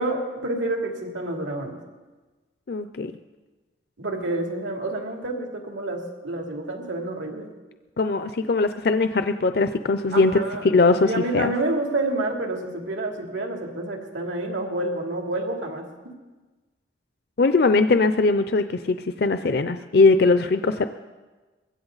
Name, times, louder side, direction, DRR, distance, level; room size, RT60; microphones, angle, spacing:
voice 1, 0.0-1.7 4.0-7.5 10.1-10.6 11.1-15.9, right 2 dB, 85° right, 1 dB, 2.9 m, -28 dB
voice 2, 2.7-3.1 8.0-11.5 17.4-20.9, left 3 dB, 55° left, 10 dB, 0.5 m, -20 dB
21.5 x 16.0 x 4.0 m, 1.3 s
head